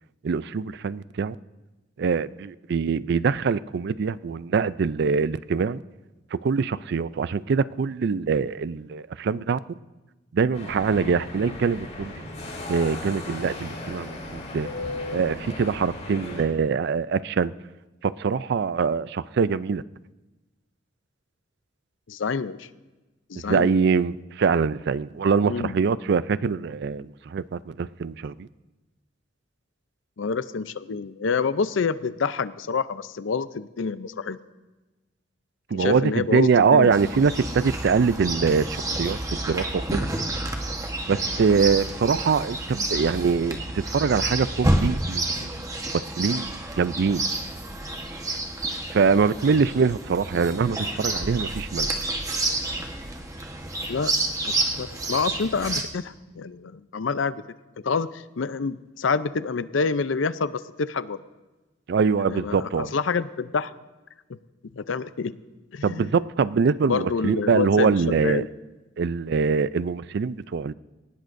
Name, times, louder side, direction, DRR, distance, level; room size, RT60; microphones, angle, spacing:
voice 1, 0.2-1.4 2.0-5.8 6.3-9.6 10.3-12.2 12.7-14.7 15.1-17.5 18.0-19.8 23.4-28.5 35.7-40.1 41.1-45.6 45.9-47.2 48.9-51.9 61.9-62.9 65.8-68.4 69.0-70.7, right 5 dB, 60° right, 17 dB, 0.4 m, -23 dB
sound 1, 10.5-16.4, left 2 dB, 40° left, 6.7 m, -36 dB
voice 2, 22.1-22.7 23.3-23.7 25.4-25.8 30.2-34.4 35.7-36.9 53.9-54.1 54.8-57.4 57.8-61.2 62.2-63.7 64.7-65.3 65.7-66.1 66.9-68.5, left 5 dB, 80° left, 14 dB, 0.5 m, -27 dB
Chirp tweet, 36.9-55.8, right 2 dB, 20° right, 1.2 m, -29 dB
21.5 x 18.5 x 2.6 m, 1.1 s
head